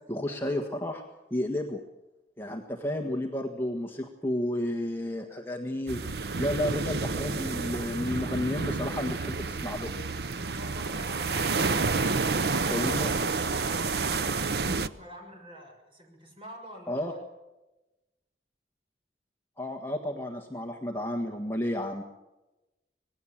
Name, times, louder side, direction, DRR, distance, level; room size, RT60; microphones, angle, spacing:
voice 1, 0.1-1.0 1.3-1.8 2.4-6.0 6.4-9.9 12.7-13.1 16.9-17.1 19.6-22.0, left 1 dB, 15° left, 1 dB, 1.6 m, -32 dB
sound 1, 5.9-14.9, right 4 dB, 65° right, 0.8 m, -29 dB
voice 2, 10.5-14.5 14.8-17.2, equal, 30° right, 2 dB, 6.7 m, -47 dB
26.0 x 20.0 x 7.5 m, 1.0 s
head